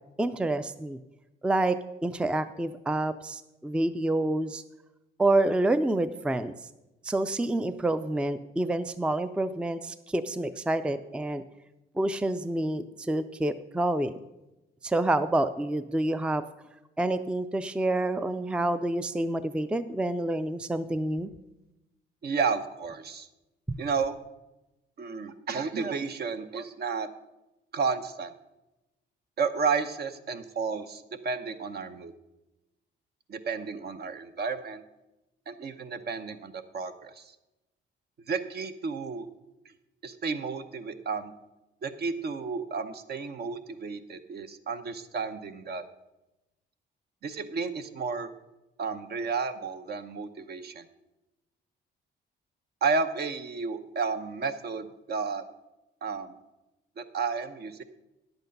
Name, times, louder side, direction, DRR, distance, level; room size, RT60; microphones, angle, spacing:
voice 1, 0.2-1.0 1.4-4.6 5.2-6.5 7.0-11.4 12.0-14.2 14.8-16.4 17.0-21.3 23.7-23.8, right 2 dB, 5° right, 12 dB, 0.4 m, -28 dB
voice 2, 22.2-23.3 23.8-24.2 25.0-27.1 27.7-28.3 29.4-32.1 33.3-34.8 35.5-37.3 38.3-39.3 40.0-41.3 41.8-45.8 47.2-48.3 48.8-50.8 52.8-55.4 56.0-56.3 57.0-57.8, right 5 dB, 55° right, 9 dB, 0.8 m, -32 dB
10.5 x 8.1 x 5.3 m, 0.99 s
cardioid pair, 90°, 20 cm